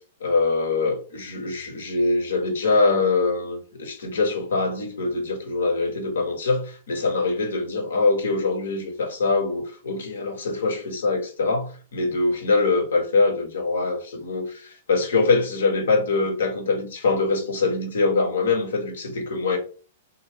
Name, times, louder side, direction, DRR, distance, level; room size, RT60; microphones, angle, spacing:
voice 1, 0.2-19.6, left 3 dB, 70° left, 0.9 m, -23 dB
3.4 x 2.1 x 3.3 m
figure-of-eight pair, 105°, 0 cm